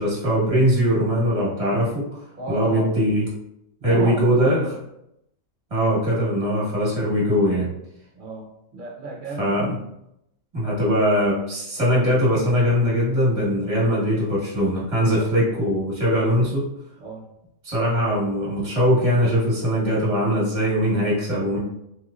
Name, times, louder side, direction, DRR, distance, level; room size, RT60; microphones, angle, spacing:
voice 1, 0.0-2.2 2.5-3.2 3.8-4.7 5.7-7.7 9.4-9.8 10.5-16.7 17.6-21.6, equal, 30° right, -7 dB, 1.2 m, -21 dB
voice 2, 2.4-2.9 3.8-4.4 8.1-9.5 15.2-15.3 17.0-17.3, right 2 dB, 50° right, 0 dB, 0.7 m, -34 dB
3.2 x 2.9 x 2.5 m, 0.80 s
omnidirectional pair, 1.3 m